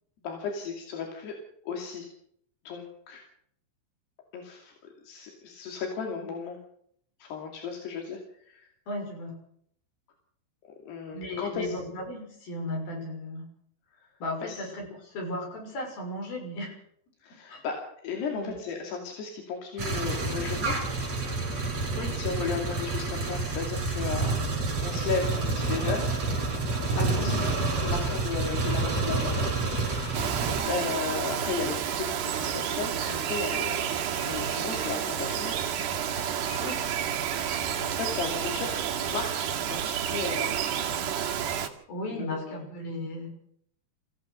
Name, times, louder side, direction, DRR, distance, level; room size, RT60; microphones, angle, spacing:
voice 1, 0.2-1.3 1.6-2.1 2.7-3.2 4.3-4.7 5.0-6.6 7.2-8.7 10.9-11.7 14.4-14.6 17.2-17.8 18.0-20.8 22.1-24.5 24.8-26.1 26.9-29.5 30.7-33.9 34.2-35.5 37.7-40.6 42.1-42.6, left 5 dB, 85° left, 1 dB, 4.7 m, -35 dB
voice 2, 8.9-9.3 11.1-13.5 14.2-16.7 17.5-17.6 18.3-18.6 21.9-22.2 27.1-27.4 30.4-30.7 36.6-36.8 41.9-43.3, left 1 dB, 65° left, 1 dB, 8.0 m, -36 dB
sound 1, 19.8-30.6, right 3 dB, 40° right, 5.9 m, -28 dB
Bird vocalization bird call bird song, 30.1-41.7, right 9 dB, 90° right, 4.1 m, -30 dB
25.5 x 15.5 x 6.5 m, 0.67 s
omnidirectional pair, 4.6 m